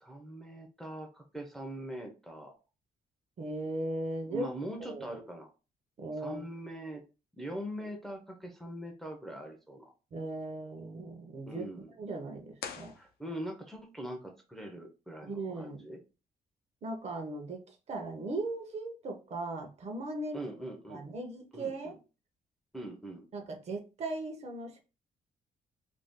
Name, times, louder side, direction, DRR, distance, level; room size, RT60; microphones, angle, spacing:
voice 1, 0.0-2.5 4.3-5.5 6.2-7.0 7.4-9.9 11.5-11.9 13.0-16.0 20.3-21.1 21.5-22.0 22.7-23.2, right 1 dB, ahead, 0.5 m, -42 dB
voice 2, 3.4-4.5 4.8-5.0 6.0-6.4 10.1-11.7 12.0-12.9 15.2-15.8 16.8-20.4 20.9-22.0 23.3-24.8, right 2 dB, 45° right, 0.7 m, -38 dB
sound 1, 12.5-13.7, left 7 dB, 80° left, 0.5 m, -45 dB
2.6 x 2.2 x 3.5 m
cardioid pair, 145°, 16 cm